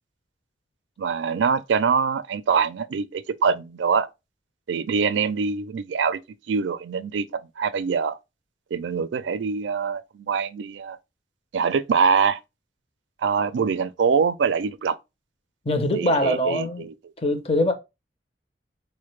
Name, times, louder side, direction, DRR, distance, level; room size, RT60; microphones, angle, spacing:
voice 1, 1.0-4.1 4.7-6.2 6.5-8.2 8.7-11.0 11.5-12.4 13.2-15.0 15.9-16.9, right 6 dB, 85° right, 0.4 m, -24 dB
voice 2, 15.7-16.9 17.2-17.7, left 1 dB, 30° left, 0.6 m, -22 dB
4.2 x 2.1 x 3.1 m
head